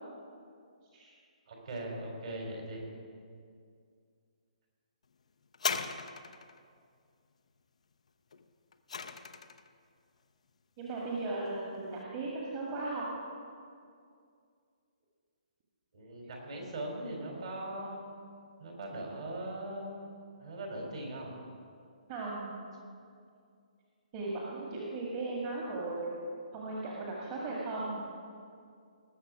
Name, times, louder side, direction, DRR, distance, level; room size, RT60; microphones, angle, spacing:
voice 1, 1.5-2.8 15.9-18.1 18.6-20.1 20.4-21.3, right 1 dB, 55° right, 0 dB, 3.3 m, -40 dB
sound 1, 5.5-6.6 8.3-9.7 10.5-10.6, left 5 dB, 55° left, 0.7 m, -37 dB
voice 2, 10.8-13.1 22.1-22.5 24.1-26.2 26.5-28.0, right 2 dB, 30° right, -4 dB, 1.8 m, -37 dB
19.5 x 6.8 x 4.9 m, 2.3 s
figure-of-eight pair, 130°, 4 cm